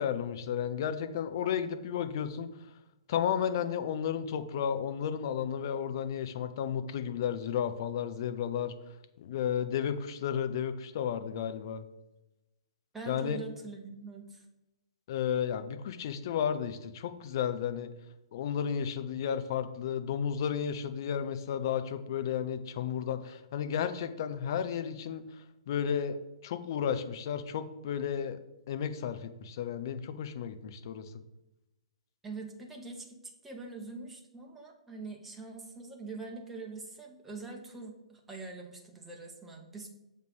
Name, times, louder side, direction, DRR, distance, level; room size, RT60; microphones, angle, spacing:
voice 1, 0.0-2.5 3.1-8.7 9.2-11.8 13.1-13.4 15.1-17.9 18.3-25.2 25.7-26.2 26.4-28.4 28.7-31.1, left 8 dB, 45° left, 9 dB, 0.6 m, -33 dB
voice 2, 12.9-14.4 32.2-39.9, right 3 dB, 10° right, 0 dB, 1.0 m, -43 dB
6.7 x 3.3 x 6.1 m, 0.97 s
figure-of-eight pair, 120°, 3 cm